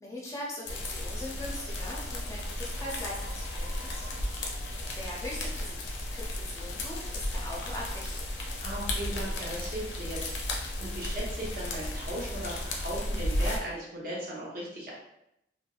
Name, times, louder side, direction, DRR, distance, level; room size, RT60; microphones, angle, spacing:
voice 1, 0.0-4.1 5.0-5.7 6.1-8.2, left 1 dB, 15° left, -4 dB, 0.5 m, -40 dB
sound 1, 0.6-13.6, left 1 dB, 85° left, 0.5 m, -34 dB
voice 2, 8.6-10.5 10.8-14.9, right 1 dB, 55° right, -5 dB, 0.9 m, -37 dB
3.3 x 2.0 x 2.3 m, 0.81 s
head